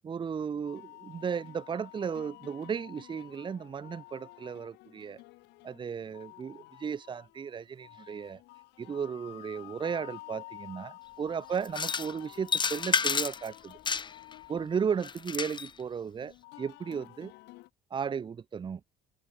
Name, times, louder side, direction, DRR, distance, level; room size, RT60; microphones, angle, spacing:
voice 1, 0.0-5.2 5.6-8.4 8.8-13.8 14.5-17.3 17.9-18.8, right 7 dB, 30° right, 0.7 m, -35 dB
sound 1, 0.7-17.7, left 20 dB, 90° left, 3.1 m, -51 dB
sound 2, 11.6-12.1 12.5-13.5 13.8-14.3 15.0-15.7, left 5 dB, 25° left, 1.1 m, -30 dB
cardioid pair, 110°, 17 cm